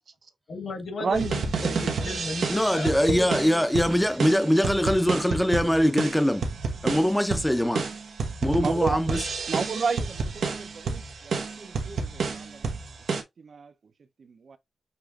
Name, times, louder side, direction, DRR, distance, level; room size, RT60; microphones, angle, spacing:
voice 1, 0.5-3.6, left 3 dB, 55° left, 1.4 m, -34 dB
sound 1, 1.1-13.2, right 4 dB, 85° right, 1.1 m, -30 dB
voice 2, 2.5-6.5 6.8-7.9 8.4-9.3, equal, 5° left, 0.6 m, -23 dB
voice 3, 8.6-9.2 9.5-12.6 13.4-13.7 14.3-14.6, right 5 dB, 50° right, 0.6 m, -31 dB
6.7 x 3.1 x 2.4 m
wide cardioid pair, 175°, 0 cm